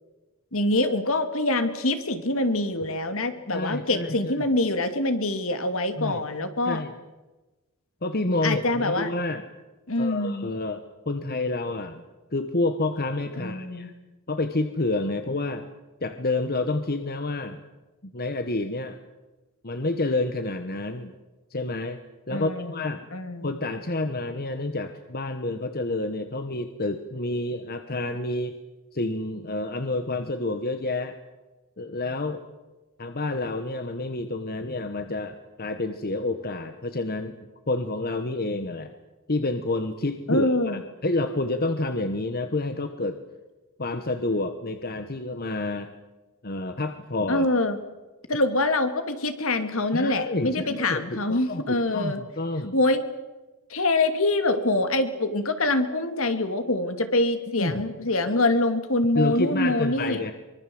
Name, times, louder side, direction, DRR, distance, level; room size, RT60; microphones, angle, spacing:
voice 1, 0.5-6.8 8.4-9.1 9.9-10.5 13.4-13.9 22.3-22.8 23.1-23.5 40.3-40.8 47.3-47.8 48.3-52.2 52.7-53.0 53.7-60.2, left 2 dB, 65° left, 9 dB, 2.5 m, -25 dB
voice 2, 3.5-4.3 6.0-6.2 6.6-6.9 8.0-9.4 10.0-12.0 12.3-13.9 14.3-15.7 16.0-17.6 18.1-19.0 19.6-21.1 21.5-22.0 22.3-23.0 23.4-28.6 28.9-31.2 31.8-32.4 33.0-37.3 37.7-38.9 39.3-43.2 43.8-45.9 46.4-47.5 49.9-52.8 57.6-57.9 59.1-60.3, left 2 dB, 45° left, 8 dB, 1.3 m, -29 dB
24.0 x 23.5 x 7.8 m, 1.1 s
head